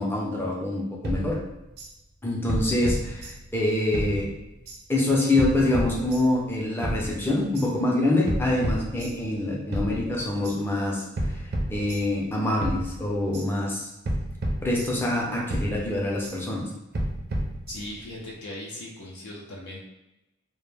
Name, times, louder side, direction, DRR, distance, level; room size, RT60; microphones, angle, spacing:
voice 1, 0.0-1.4 2.2-4.3 4.9-13.9 14.6-16.7, left 1 dB, 10° left, -3 dB, 0.4 m, -25 dB
sound 1, 1.0-1.9 2.5-3.6 3.9-4.8 5.4-6.5 6.8-7.7 8.3-9.4 9.7-10.6 11.2-12.3 12.6-13.5 14.1-15.2 15.5-16.4 16.9-18.1, right 1 dB, 50° right, 0.4 m, -31 dB
voice 2, 17.7-19.8, left 1 dB, 80° left, -3 dB, 0.4 m, -38 dB
2.1 x 2.0 x 3.1 m, 0.93 s
head